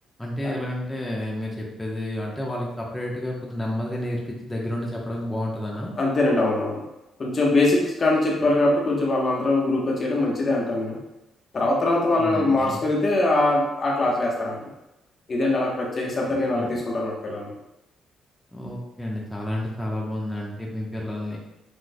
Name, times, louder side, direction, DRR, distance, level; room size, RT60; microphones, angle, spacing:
voice 1, 0.2-5.9 12.2-12.8 16.3-16.8 18.5-21.4, left 1 dB, 10° left, -3 dB, 0.9 m, -30 dB
voice 2, 6.0-6.8 7.2-11.0 11.5-14.7 15.3-17.5, left 2 dB, 40° left, -2 dB, 1.0 m, -22 dB
6.2 x 3.1 x 2.2 m, 0.94 s
cardioid pair, 90°, 0 cm